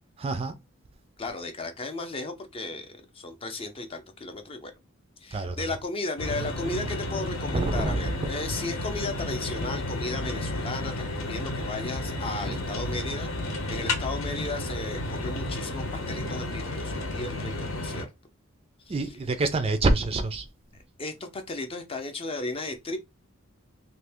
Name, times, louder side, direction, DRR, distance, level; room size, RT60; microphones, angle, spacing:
voice 1, 0.2-0.5 5.3-5.6 7.5-8.1 12.5-12.6 18.9-20.4, right 2 dB, 30° right, 0.4 m, -26 dB
voice 2, 1.2-4.7 5.2-18.1 18.9-19.2 21.0-23.0, left 2 dB, 30° left, 0.5 m, -35 dB
sound 1, 6.2-18.0, left 1 dB, 75° left, 0.9 m, -32 dB
2.7 x 2.6 x 3.4 m
head